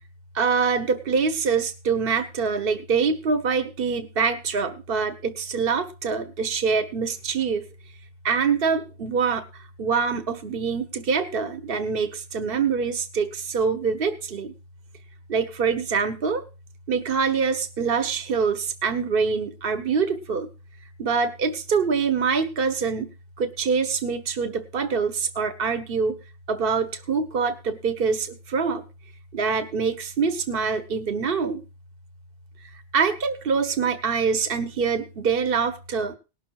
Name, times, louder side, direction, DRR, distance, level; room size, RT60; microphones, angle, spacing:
voice 1, 0.3-7.7 8.2-14.5 15.3-16.4 16.9-20.5 21.0-23.1 23.4-26.2 26.5-28.8 29.3-31.6 32.9-36.1, right 5 dB, 55° right, 10 dB, 1.3 m, -25 dB
19.0 x 6.4 x 4.7 m, 0.31 s
omnidirectional pair, 1.2 m